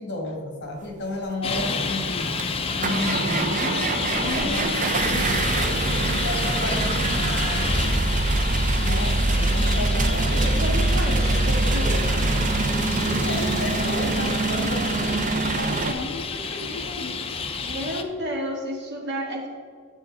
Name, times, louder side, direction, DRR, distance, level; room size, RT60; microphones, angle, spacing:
voice 1, 0.0-2.4 2.7-8.0 8.8-10.6 13.0-17.4, left 2 dB, 50° left, 2 dB, 1.6 m, -33 dB
Traffic noise roadway noise, 1.4-18.0, left 4 dB, 25° left, 0.5 m, -30 dB
sound 1, 2.4-15.9, right 2 dB, 35° right, 0.5 m, -24 dB
voice 2, 10.3-12.1 17.6-19.5, equal, 50° right, 0 dB, 1.7 m, -31 dB
10.0 x 6.9 x 4.0 m, 2.1 s
head